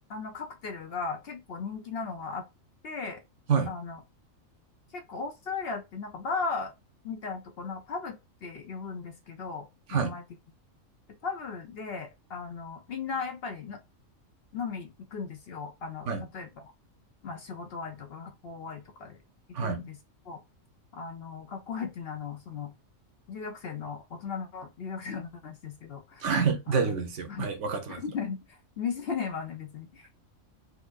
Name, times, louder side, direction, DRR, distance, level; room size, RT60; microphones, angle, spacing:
voice 1, 0.1-2.4 2.8-3.2 3.7-4.0 4.9-6.7 7.0-10.2 11.2-13.8 14.5-16.7 17.2-19.2 19.6-20.0 20.3-20.4 20.9-22.7 23.3-26.3 26.7-26.9 27.3-27.5 27.9-30.1, left 5 dB, 55° left, 0.7 m, -37 dB
voice 2, 26.2-28.0, right 6 dB, 65° right, 1.0 m, -27 dB
4.3 x 2.5 x 2.4 m
omnidirectional pair, 1.4 m